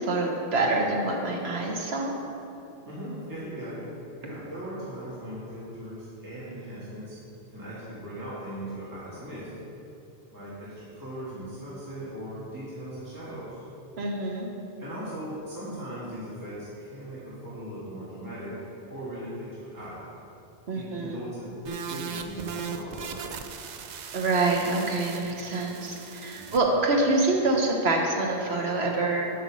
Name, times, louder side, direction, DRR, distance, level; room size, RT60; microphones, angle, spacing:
voice 1, 0.0-2.1 14.0-14.5 20.7-21.2 24.1-29.3, right 2 dB, 85° right, 0 dB, 1.3 m, -26 dB
voice 2, 2.8-3.9 4.2-7.2 7.5-9.5 10.3-13.6 14.8-18.6 18.9-20.0 20.7-23.3 26.4-26.7, right 1 dB, 20° right, -9 dB, 1.7 m, -39 dB
sound 1, 21.6-26.6, right 6 dB, 55° right, 0.5 m, -38 dB
7.9 x 5.1 x 6.3 m, 2.7 s
omnidirectional pair, 1.0 m